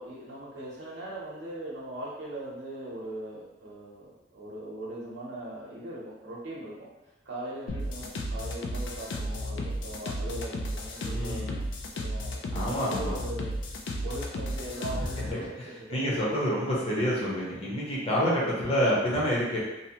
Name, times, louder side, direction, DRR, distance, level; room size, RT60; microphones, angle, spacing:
voice 1, 0.0-6.9 7.3-11.6 11.9-13.6 14.0-16.3, right 1 dB, 80° right, -6 dB, 0.7 m, -40 dB
sound 1, 7.7-15.3, equal, 70° left, 0.4 m, -33 dB
voice 2, 11.0-11.6 12.5-13.2 15.3-15.4 15.9-19.6, equal, 35° left, -6 dB, 0.8 m, -28 dB
2.7 x 2.0 x 2.8 m, 1.0 s
head